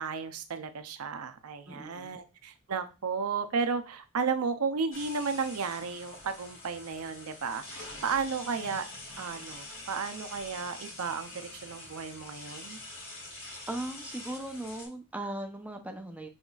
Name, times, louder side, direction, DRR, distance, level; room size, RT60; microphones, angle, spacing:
voice 1, 0.0-8.9 9.2-12.8, right 5 dB, 90° right, 9 dB, 0.6 m, -33 dB
voice 2, 1.7-2.2 13.7-16.3, right 1 dB, 5° right, 3 dB, 0.6 m, -38 dB
sound 1, 4.9-14.9, left 2 dB, 65° left, 1.4 m, -45 dB
5.1 x 3.9 x 2.4 m, 0.29 s
head